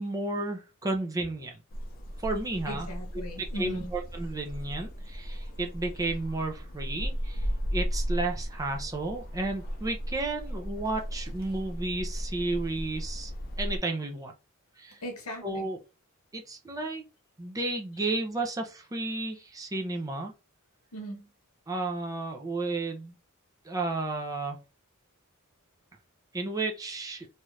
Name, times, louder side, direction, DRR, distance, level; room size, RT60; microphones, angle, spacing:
voice 1, 0.0-1.6 2.2-2.9 3.4-7.5 7.7-13.3 13.6-14.3 14.8-15.0 15.4-15.8 16.3-17.0 17.4-20.3 21.7-23.1 23.6-24.6 26.3-27.3, right 2 dB, 15° right, 0.5 m, -32 dB
sound 1, 1.7-13.8, equal, 40° left, 0.7 m, -35 dB
voice 2, 2.7-3.9 15.0-15.7 20.9-21.3, equal, 85° left, 0.9 m, -38 dB
2.8 x 2.4 x 3.1 m
head